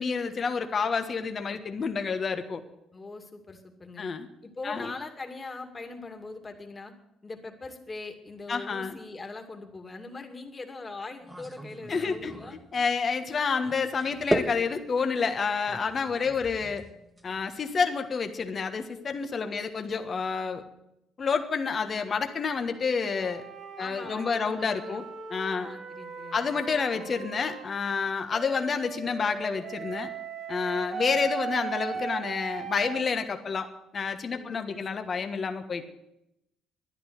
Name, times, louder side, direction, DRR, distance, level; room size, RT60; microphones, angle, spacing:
voice 1, 0.0-2.6 4.0-4.3 4.6-4.9 8.5-9.0 11.9-12.3 12.7-16.8 17.2-20.6 21.2-23.4 23.8-25.0 25.3-25.7 26.3-30.1 30.5-33.7 33.9-35.9, left 5 dB, 40° left, 7 dB, 1.4 m, -29 dB
voice 2, 2.9-4.1 4.4-6.9 7.2-12.6 16.1-16.9 19.4-19.8 23.8-25.0 25.4-26.5 26.9-27.1 30.7-31.2 34.3-35.0, left 3 dB, 25° left, 4 dB, 2.4 m, -42 dB
sound 1, 11.2-12.8 13.6-17.5, right 1 dB, 10° right, 1.7 m, -36 dB
sound 2, 23.1-27.7 28.3-33.1, right 5 dB, 50° right, 2.1 m, -38 dB
12.0 x 10.5 x 8.1 m, 0.86 s
supercardioid pair, 75°, 0 cm